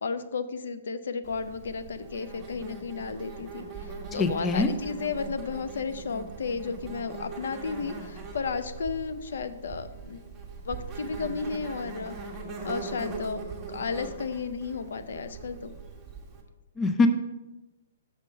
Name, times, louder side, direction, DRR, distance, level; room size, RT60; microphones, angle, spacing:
voice 1, 0.0-10.3 10.6-12.2 12.6-15.7, left 5 dB, 75° left, 11 dB, 0.5 m, -33 dB
Insect, 1.2-16.4, right 3 dB, 15° right, 1.1 m, -41 dB
voice 2, 4.2-4.7 16.8-17.1, left 3 dB, 15° left, 9 dB, 0.4 m, -23 dB
6.3 x 3.8 x 5.3 m, 1.0 s
hypercardioid pair, 155°, 0 cm